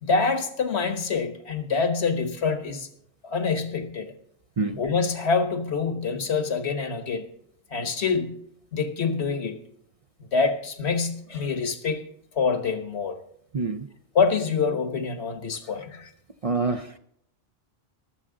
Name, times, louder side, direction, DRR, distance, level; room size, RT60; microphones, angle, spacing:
voice 1, 0.0-2.9 3.2-4.1 4.8-7.3 7.7-8.4 8.7-9.6 10.3-12.0 12.4-13.2 14.1-16.1, left 5 dB, 75° left, 8 dB, 1.4 m, -26 dB
voice 2, 13.5-13.9 16.4-17.0, right 4 dB, 45° right, 7 dB, 0.5 m, -26 dB
22.0 x 7.7 x 3.8 m, 0.71 s
omnidirectional pair, 1.1 m